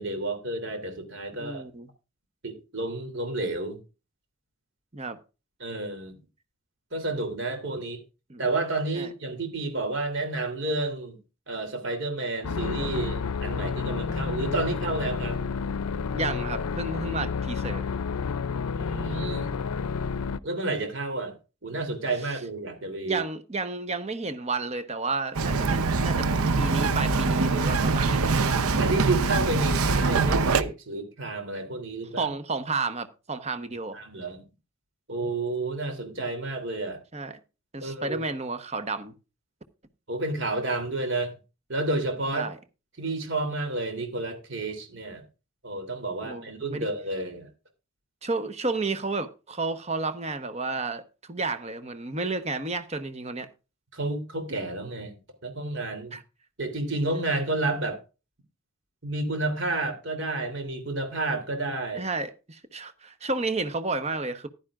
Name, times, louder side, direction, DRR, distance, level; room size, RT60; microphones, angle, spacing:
voice 1, 0.0-1.6 2.4-3.8 5.6-6.1 6.9-8.0 8.4-11.2 11.5-15.4 18.7-19.5 20.4-21.3 21.6-23.2 28.8-32.3 33.9-34.4 35.1-37.0 37.8-38.2 40.1-41.3 41.7-42.5 43.0-45.2 45.6-47.5 53.9-55.2 55.4-56.2 56.6-58.0 59.0-62.1, right 2 dB, 55° right, 3.1 m, -30 dB
voice 2, 1.4-1.9 4.9-5.2 8.3-8.4 8.9-9.1 16.1-17.9 23.0-26.3 26.6-28.3 32.2-34.0 37.1-37.4 37.7-39.1 42.3-42.6 46.2-46.9 48.2-53.5 56.1-56.2 61.9-64.5, right 3 dB, 30° right, 1.0 m, -31 dB
sound 1, 12.4-20.4, left 5 dB, 90° left, 0.5 m, -30 dB
Bird vocalization bird call bird song, 25.3-30.6, right 4 dB, 85° right, 0.7 m, -23 dB
15.0 x 11.0 x 2.5 m
head